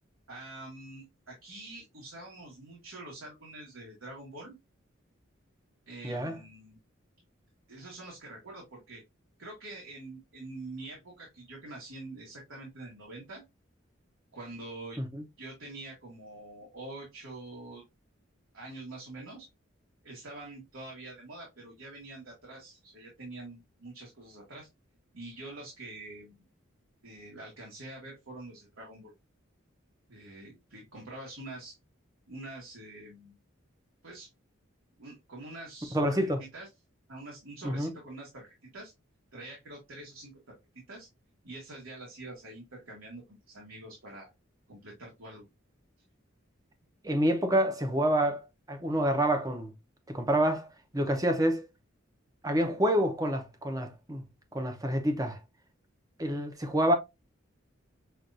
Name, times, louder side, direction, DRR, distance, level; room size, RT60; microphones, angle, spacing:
voice 1, 0.3-4.6 5.9-6.8 7.7-9.0 9.4-13.4 14.3-15.0 15.4-17.8 18.5-19.5 20.0-24.7 25.1-26.4 27.0-29.1 30.1-31.8 32.3-33.4 34.0-34.3 35.0-36.7 37.1-38.9 39.3-40.6 40.9-41.1 41.4-44.3 44.7-45.5, right 2 dB, 85° right, 1.7 m, -45 dB
voice 2, 6.0-6.4 15.0-15.2 35.9-36.4 37.6-37.9 47.0-48.4 48.7-49.7 50.1-51.7 52.4-54.2 54.5-55.4 56.2-56.9, right 1 dB, 15° right, 0.8 m, -27 dB
6.2 x 2.6 x 2.6 m
head